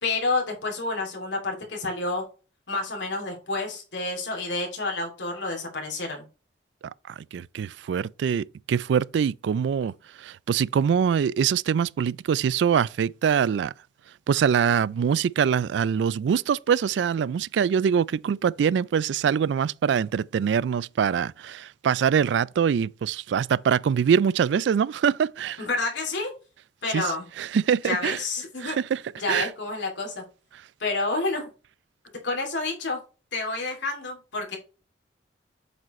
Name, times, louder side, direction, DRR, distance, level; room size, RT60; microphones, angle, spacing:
voice 1, 0.0-2.2 2.7-6.3 25.6-26.3 26.8-27.3 27.8-28.8 29.2-30.2 30.8-31.5 32.2-33.0 33.3-34.6, left 3 dB, 80° left, 2.7 m, -29 dB
voice 2, 7.1-13.7 14.3-25.6 26.9-27.1 27.4-28.2 28.6-29.0 29.3-29.5, right 7 dB, 75° right, 0.3 m, -24 dB
7.6 x 5.0 x 3.1 m
head